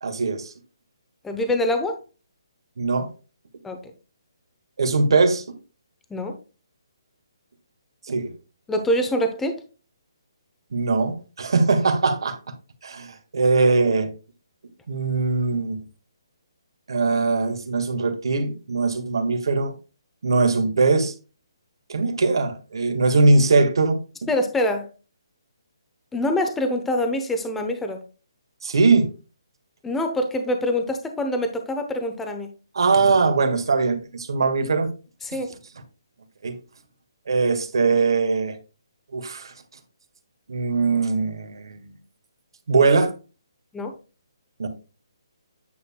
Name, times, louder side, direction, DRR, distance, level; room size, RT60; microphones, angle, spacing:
voice 1, 0.0-0.5 2.8-3.1 4.8-5.4 8.1-8.3 10.7-12.4 12.8-14.1 14.9-15.8 16.9-19.7 20.2-21.1 21.9-24.3 28.6-29.1 32.7-34.9 36.4-36.5 37.3-38.6 39.1-39.5 40.5-41.9 42.7-43.1 44.6-44.7, right 3 dB, 70° right, 1.7 m, -21 dB
voice 2, 1.2-2.0 3.6-3.9 6.1-6.4 8.7-9.6 24.3-24.9 26.1-28.0 29.8-32.5 35.2-35.5 43.7-43.9, left 1 dB, 5° left, 0.8 m, -25 dB
9.3 x 6.8 x 2.3 m
hypercardioid pair, 155°, 3 cm